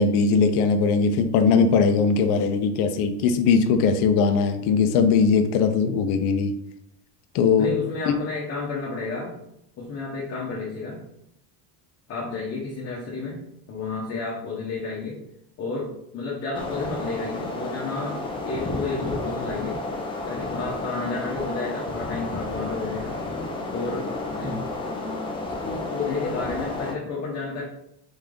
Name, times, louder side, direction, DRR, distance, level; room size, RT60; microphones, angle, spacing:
voice 1, 0.0-6.5 7.3-7.7 8.1-8.2, left 5 dB, 60° left, 7 dB, 0.7 m, -20 dB
voice 2, 7.6-9.4 9.8-11.0 12.1-15.2 15.6-19.8 20.2-23.1 23.7-24.1 24.4-24.7 25.6-27.6, left 3 dB, 35° left, -4 dB, 1.0 m, -31 dB
sound 1, 16.5-26.9, left 2 dB, 10° left, 0.5 m, -31 dB
4.0 x 3.5 x 3.8 m, 0.78 s
cardioid pair, 165°, 43 cm